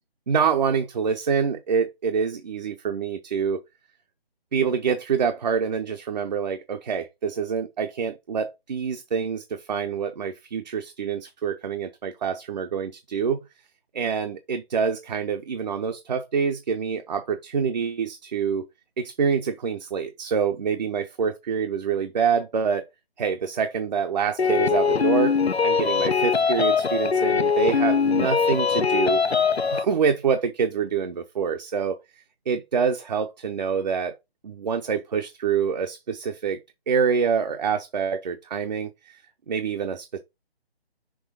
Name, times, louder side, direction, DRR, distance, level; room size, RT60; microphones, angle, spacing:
voice 1, 0.3-3.6 4.5-13.4 13.9-18.7 19.0-22.8 23.2-25.3 25.6-29.2 29.7-32.0 32.5-34.1 34.4-36.6 36.9-39.2 39.5-40.2, right 6 dB, 45° right, 0.7 m, -26 dB
sound 1, 24.4-29.9, left 5 dB, 85° left, 0.8 m, -22 dB
6.1 x 3.0 x 5.0 m
figure-of-eight pair, 150°, 31 cm